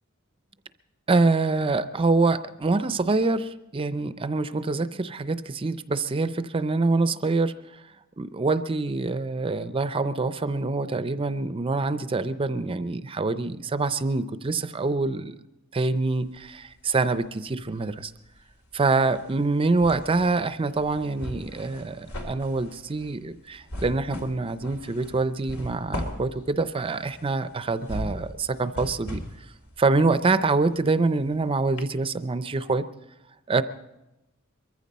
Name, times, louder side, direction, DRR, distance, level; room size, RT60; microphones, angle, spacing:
voice 1, 1.1-7.5 8.2-15.4 15.7-18.1 18.7-29.2 29.8-32.9 33.5-33.6, right 3 dB, 25° right, 12 dB, 0.5 m, -25 dB
sound 1, 16.2-17.3 17.6-31.4 31.8-31.9, equal, 85° left, 2.5 m, -39 dB
22.5 x 14.5 x 4.2 m, 0.95 s
head